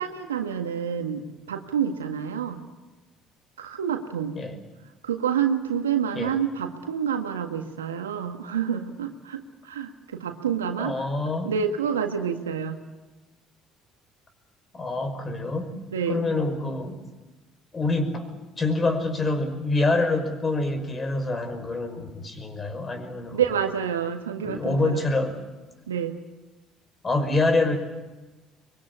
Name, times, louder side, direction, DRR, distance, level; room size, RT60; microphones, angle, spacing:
voice 1, 0.0-2.6 3.6-4.4 5.0-11.1 11.4-12.8 15.9-16.2 23.3-25.0 25.9-26.2, right 8 dB, 90° right, 6 dB, 1.7 m, -28 dB
voice 2, 10.8-11.5 14.7-15.7 16.1-17.0 17.7-18.3 18.6-23.4 24.4-25.3 27.0-27.8, left 2 dB, 30° left, 8 dB, 5.5 m, -26 dB
24.0 x 22.5 x 8.7 m, 1.2 s
hypercardioid pair, 60°, 0 cm